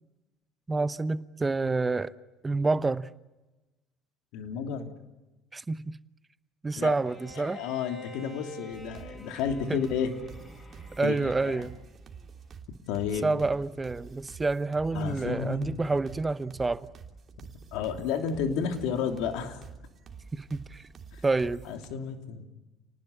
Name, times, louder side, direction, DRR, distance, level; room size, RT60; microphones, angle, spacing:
voice 1, 0.7-2.1 2.4-3.1 5.5-6.0 6.6-7.6 11.0-11.7 13.2-16.9 20.3-20.8 21.2-21.6, right 3 dB, 20° right, 0.9 m, -28 dB
voice 2, 4.3-4.9 6.8-7.0 7.3-10.2 11.0-11.2 11.4-11.7 12.9-13.3 14.9-15.8 17.7-19.6 21.1-21.2 21.6-22.5, left 7 dB, 75° left, 3.1 m, -31 dB
Bowed string instrument, 7.1-11.7, left 2 dB, 35° left, 7.7 m, -48 dB
sound 1, 8.7-21.9, right 5 dB, 40° right, 3.1 m, -48 dB
30.0 x 19.5 x 8.5 m
hypercardioid pair, 75°, 0 cm